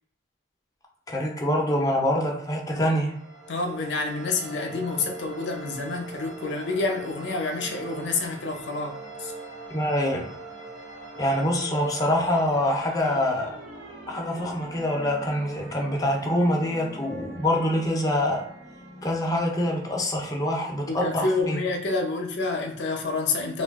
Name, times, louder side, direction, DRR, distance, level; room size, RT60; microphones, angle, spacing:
voice 1, 1.1-3.1 9.7-10.3 11.2-13.6 14.1-18.4 19.0-21.6, left 1 dB, 20° left, 0 dB, 0.5 m, -25 dB
sound 1, 2.8-21.4, right 2 dB, 85° right, 1.1 m, -42 dB
voice 2, 3.5-9.3 20.9-23.6, left 3 dB, 70° left, 2 dB, 0.5 m, -28 dB
2.7 x 2.2 x 3.4 m, 0.70 s
head